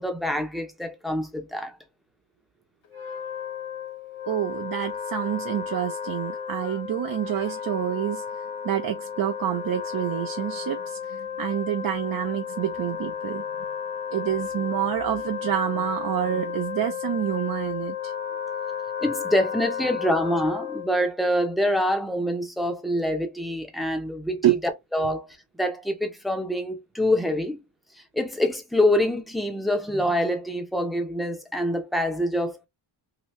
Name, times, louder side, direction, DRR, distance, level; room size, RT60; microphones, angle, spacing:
voice 1, 0.0-1.8 19.0-27.6 28.0-32.7, left 1 dB, ahead, 0.6 m, -26 dB
Wind instrument woodwind instrument, 2.8-21.0, left 7 dB, 75° left, 0.9 m, -33 dB
voice 2, 4.3-13.4 14.1-18.1 24.4-24.6, right 11 dB, 50° right, 0.5 m, -28 dB
2.9 x 2.7 x 3.1 m
wide cardioid pair, 135°, 48 cm